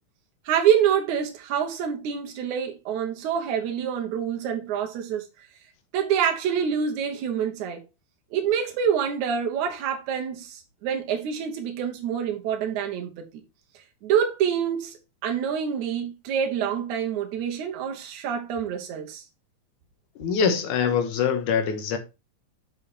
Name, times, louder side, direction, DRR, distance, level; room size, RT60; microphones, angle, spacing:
voice 1, 0.5-5.3 5.9-7.8 8.3-13.4 14.0-19.2, right 8 dB, 75° right, 2.4 m, -26 dB
voice 2, 20.2-22.0, left 6 dB, 85° left, 2.7 m, -24 dB
6.6 x 5.5 x 4.2 m
omnidirectional pair, 3.5 m